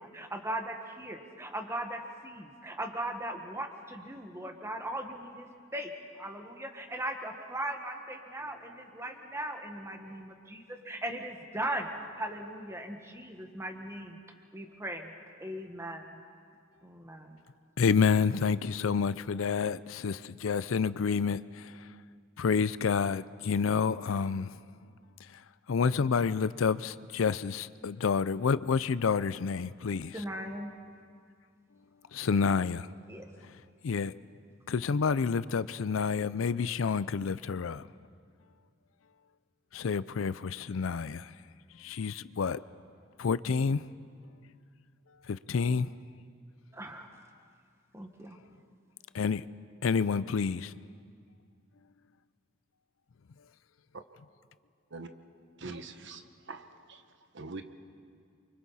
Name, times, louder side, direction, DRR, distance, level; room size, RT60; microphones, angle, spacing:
voice 1, 0.0-11.9 12.2-14.2 14.5-15.1 15.4-16.2 16.8-17.4 30.1-30.7 33.1-33.3 46.7-47.1 47.9-48.4, right 1 dB, 15° right, 1.6 m, -38 dB
voice 2, 17.8-21.7 22.4-24.5 25.7-30.1 32.1-32.9 33.8-34.1 34.7-37.8 39.7-41.3 41.8-42.6 43.2-43.9 45.3-45.9 49.1-49.4 49.8-50.7, left 5 dB, 75° left, 0.5 m, -29 dB
voice 3, 55.6-57.1 57.3-57.6, right 3 dB, 60° right, 1.1 m, -43 dB
28.5 x 24.5 x 4.2 m
head